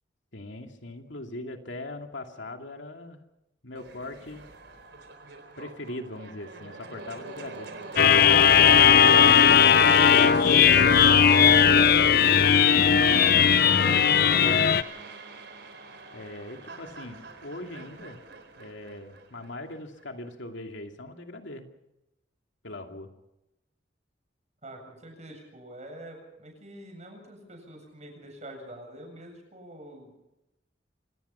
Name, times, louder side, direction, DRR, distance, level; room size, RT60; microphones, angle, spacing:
voice 1, 0.3-3.2 3.6-4.5 5.6-7.7 9.4-13.2 13.6-14.7 16.1-18.2 18.6-21.7 22.6-23.1, left 1 dB, 90° left, 4 dB, 2.6 m, -40 dB
sound 1, 3.7-19.8, right 3 dB, 70° right, 4.1 m, -40 dB
sound 2, 8.0-14.8, left 7 dB, 55° left, 0.7 m, -18 dB
voice 2, 24.6-30.2, right 1 dB, 40° right, 3 dB, 7.6 m, -45 dB
27.0 x 19.0 x 5.7 m, 0.90 s
head